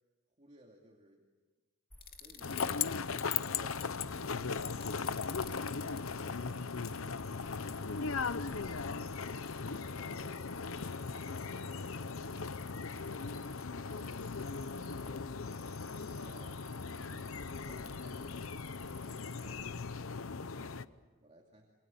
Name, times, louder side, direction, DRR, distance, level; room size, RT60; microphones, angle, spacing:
voice 1, 0.4-1.2 2.1-5.1 13.1-18.2 18.8-19.5 19.9-21.7, right 1 dB, 30° right, 0 dB, 2.6 m, -62 dB
Cricket, 1.9-20.8, left 1 dB, 10° left, 2.4 m, -58 dB
sound 1, 2.0-3.0 4.6-6.1, left 9 dB, 45° left, 2.5 m, -50 dB
sound 2, 2.4-20.9, left 5 dB, 70° left, 0.8 m, -38 dB
voice 2, 9.2-11.8 19.3-19.8, equal, 15° right, 2 dB, 6.9 m, -64 dB
29.0 x 26.5 x 7.2 m, 1.3 s
head